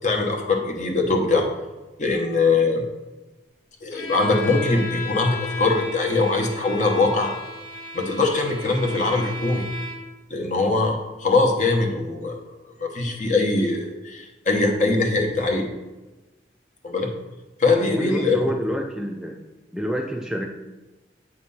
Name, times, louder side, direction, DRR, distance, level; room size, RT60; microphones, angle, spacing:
voice 1, 0.0-1.5 2.0-2.8 3.8-7.3 7.9-9.7 10.3-12.4 12.8-15.7 16.8-17.1 17.6-18.4, left 3 dB, 45° left, 2 dB, 1.0 m, -22 dB
Bowed string instrument, 3.9-10.2, left 3 dB, 85° left, 1.0 m, -35 dB
voice 2, 17.8-19.4 19.7-20.5, equal, 5° right, 2 dB, 0.3 m, -28 dB
8.4 x 3.0 x 5.5 m, 1.1 s
head